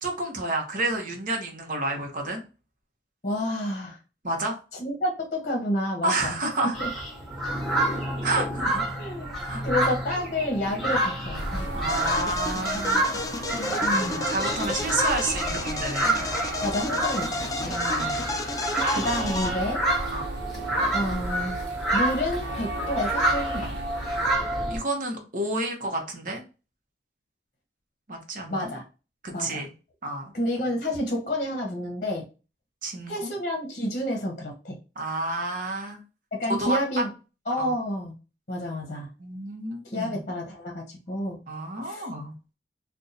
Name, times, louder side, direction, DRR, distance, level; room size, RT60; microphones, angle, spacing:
voice 1, 0.0-2.4 4.2-4.6 6.0-6.8 8.2-8.8 9.4-9.6 11.7-13.1 13.8-16.2 17.7-18.3 20.1-20.2 24.7-26.4 28.1-28.7 29.2-29.7 30.0-30.3 32.8-33.3 35.0-36.0 36.6-37.0 37.6-37.7 39.2-40.1 41.5-42.3, right 2 dB, 50° right, 2 dB, 0.9 m, -30 dB
voice 2, 3.2-4.0 4.7-6.4 6.8-6.9 7.7-8.0 8.3-8.5 8.9-9.3 9.6-11.7 13.5-14.2 16.6-17.7 18.9-19.8 20.9-21.6 21.9-23.7 28.5-28.8 29.3-29.7 30.3-32.2 33.1-34.8 36.3-37.1 37.5-38.1 38.5-39.1 39.8-41.4 41.8-42.1, left 1 dB, 45° left, 1 dB, 0.8 m, -29 dB
sound 1, 6.7-24.8, right 1 dB, ahead, 1.1 m, -28 dB
sound 2, 11.3-24.3, right 2 dB, 80° right, 0.8 m, -38 dB
sound 3, 11.9-19.5, left 2 dB, 20° left, 0.3 m, -32 dB
2.6 x 2.3 x 3.9 m, 0.32 s
head